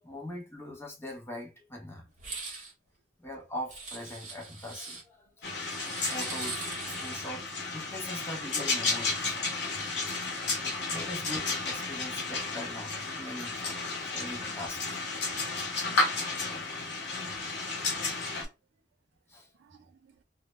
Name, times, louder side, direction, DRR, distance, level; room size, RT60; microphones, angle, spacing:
voice 1, 0.0-2.1 3.2-9.4 9.7-9.9 10.9-11.4 11.7-15.0 19.3-19.5, left 1 dB, 15° left, 0.6 m, -42 dB
sound 1, 2.2-2.7 3.7-5.0 5.6-7.4, right 4 dB, 40° right, 0.8 m, -41 dB
sound 2, 5.4-18.4, left 3 dB, 75° left, 0.8 m, -33 dB
voice 2, 10.2-11.1 19.5-20.2, right 5 dB, 80° right, 0.4 m, -59 dB
2.1 x 2.0 x 2.8 m
head